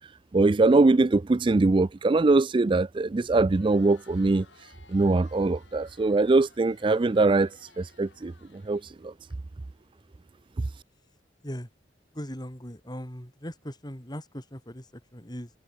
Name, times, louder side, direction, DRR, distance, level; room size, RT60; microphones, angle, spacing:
voice 1, 0.3-4.5 4.9-7.5 7.8-8.3 8.7-9.1, right 3 dB, 25° right, 0.4 m, -22 dB
Crowd, 3.3-9.3, left 4 dB, 75° left, 5.8 m, -58 dB
voice 2, 12.1-15.5, equal, 20° left, 4.3 m, -39 dB
head